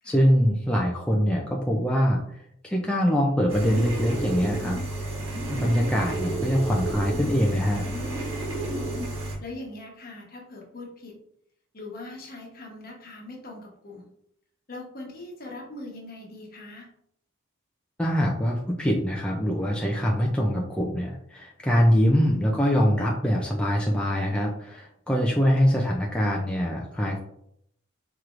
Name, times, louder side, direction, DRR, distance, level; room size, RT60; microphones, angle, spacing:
voice 1, 0.0-4.8 5.5-7.8 18.0-27.2, equal, 5° left, -2 dB, 0.4 m, -23 dB
sound 1, 3.5-9.3, right 2 dB, 75° right, 1.4 m, -31 dB
voice 2, 8.5-11.2 11.7-14.1 14.7-16.9, left 2 dB, 45° left, -1 dB, 1.0 m, -41 dB
4.6 x 3.0 x 2.5 m, 0.72 s
head